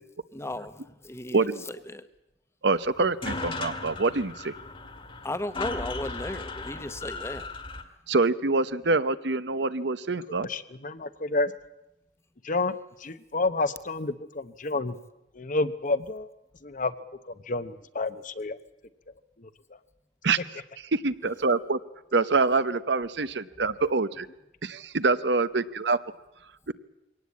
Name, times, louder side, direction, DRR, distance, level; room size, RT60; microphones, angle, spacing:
voice 1, 0.3-2.0 5.2-7.5, left 1 dB, 15° left, 12 dB, 1.1 m, -35 dB
voice 2, 1.3-1.6 2.6-4.5 8.1-10.5 20.2-20.4 20.9-21.8 22.1-24.3 24.6-26.0 26.7-26.8, right 3 dB, 70° right, 14 dB, 0.9 m, -25 dB
sound 1, 2.8-2.9 3.0-7.8, left 3 dB, 30° left, 1.9 m, -36 dB
voice 3, 10.4-11.5 12.4-15.0 15.3-16.3 16.6-16.9 17.3-18.6 19.4-19.5, left 3 dB, 50° left, 12 dB, 1.0 m, -29 dB
23.0 x 18.0 x 8.5 m, 0.90 s
head